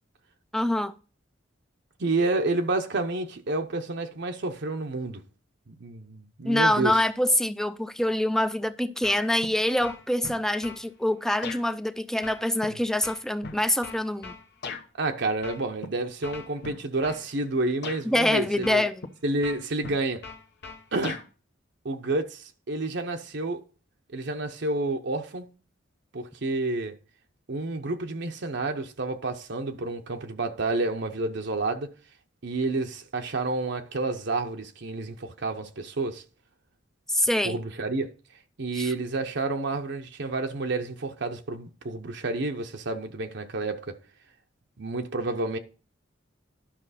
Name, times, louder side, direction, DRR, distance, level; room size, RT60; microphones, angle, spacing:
voice 1, 0.5-0.9 6.4-14.3 18.0-19.1 37.1-37.6 38.8-38.9, left 1 dB, 5° left, 0.5 m, -25 dB
voice 2, 2.0-5.2 5.7-7.0 15.0-18.9 19.2-20.2 20.9-21.2 21.8-23.6 24.1-25.5 26.1-27.0 27.5-31.9 32.4-36.2 37.4-38.1 38.6-44.0 44.8-45.6, right 2 dB, 60° right, 0.8 m, -29 dB
sound 1, 9.0-9.5 9.8-10.8 11.4-11.6 12.2-14.9 15.4-15.9 16.2-17.2 17.8-18.0 18.6-19.1 19.4-21.3, left 4 dB, 60° left, 1.0 m, -39 dB
11.5 x 5.8 x 4.2 m
head